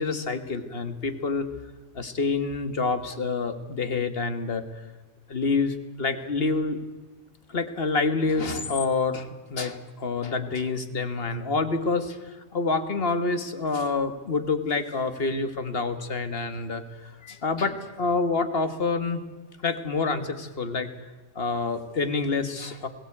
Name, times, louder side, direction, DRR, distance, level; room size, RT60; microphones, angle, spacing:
voice 1, 0.0-1.5 1.9-4.6 5.3-6.8 7.5-19.2 19.6-20.9 21.3-22.9, left 4 dB, 45° left, 10 dB, 1.6 m, -27 dB
21.0 x 17.0 x 8.6 m, 1.3 s
omnidirectional pair, 1.4 m